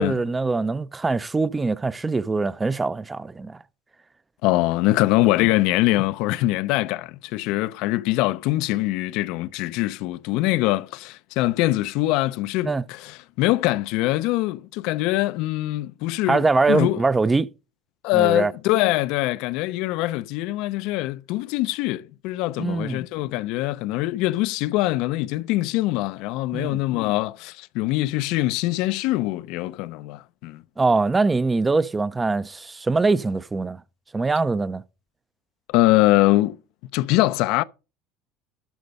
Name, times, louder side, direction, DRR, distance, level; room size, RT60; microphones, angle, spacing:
voice 1, 0.0-3.6 12.6-12.8 16.3-17.5 18.1-18.5 22.6-23.0 26.5-26.8 30.8-33.8 34.1-34.8, right 3 dB, 15° right, 0.5 m, -23 dB
voice 2, 4.4-17.0 18.0-30.6 35.7-36.6 36.9-37.6, left 17 dB, 70° left, 0.5 m, -23 dB
13.0 x 5.1 x 5.3 m
supercardioid pair, 120°, 0 cm